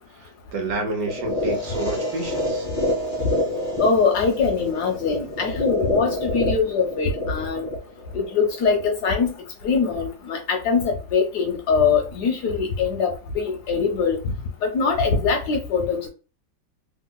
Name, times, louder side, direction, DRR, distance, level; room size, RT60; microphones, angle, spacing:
voice 1, 0.2-2.7, right 3 dB, 70° right, 1.1 m, -29 dB
sound 1, 1.0-9.0, left 1 dB, 35° left, 0.4 m, -28 dB
voice 2, 3.8-7.7 8.1-9.3 9.6-14.2 14.6-16.1, left 5 dB, 70° left, 1.0 m, -22 dB
2.9 x 2.8 x 2.2 m
omnidirectional pair, 2.1 m